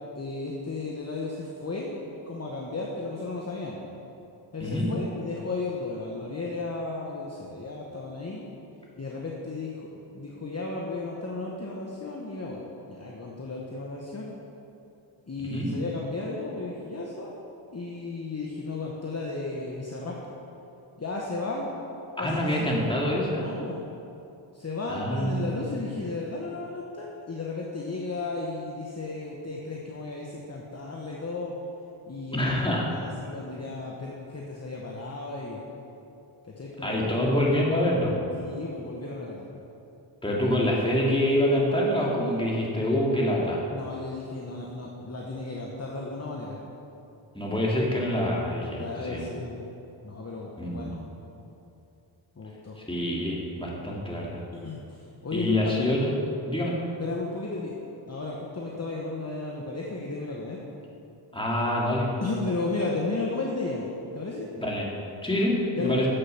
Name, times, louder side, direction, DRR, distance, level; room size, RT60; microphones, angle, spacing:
voice 1, 0.1-1.9 2.3-3.8 4.5-8.4 9.0-14.3 15.3-17.3 17.7-20.2 21.0-21.7 22.2-22.9 23.4-23.8 24.5-31.5 32.1-32.4 32.9-35.6 36.4-37.3 38.3-39.5 42.2-42.9 43.7-46.6 48.7-49.7 50.0-51.0 52.4-52.8 54.5-55.8 57.0-57.8 58.1-60.6 62.2-63.8 64.1-64.5 65.8-66.0, left 3 dB, 30° left, -2 dB, 1.1 m, -34 dB
voice 2, 22.2-23.4 24.9-25.5 32.3-32.9 36.8-38.3 40.2-43.6 47.3-49.2 50.6-50.9 52.8-54.4 55.3-56.2 56.5-56.7 61.3-62.1 64.6-64.9 65.2-66.1, left 1 dB, 10° left, -4 dB, 2.2 m, -26 dB
7.5 x 6.7 x 5.7 m, 2.8 s
cardioid pair, 45°, 49 cm